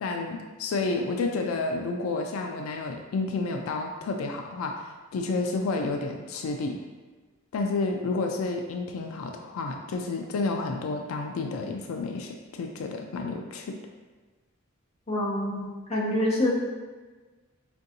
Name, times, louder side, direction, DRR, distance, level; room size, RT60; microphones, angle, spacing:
voice 1, 0.0-6.8 7.5-13.8, left 3 dB, 90° left, 3 dB, 0.3 m, -30 dB
voice 2, 15.1-16.5, left 1 dB, 30° left, -5 dB, 0.7 m, -26 dB
4.4 x 2.6 x 2.7 m, 1.3 s
head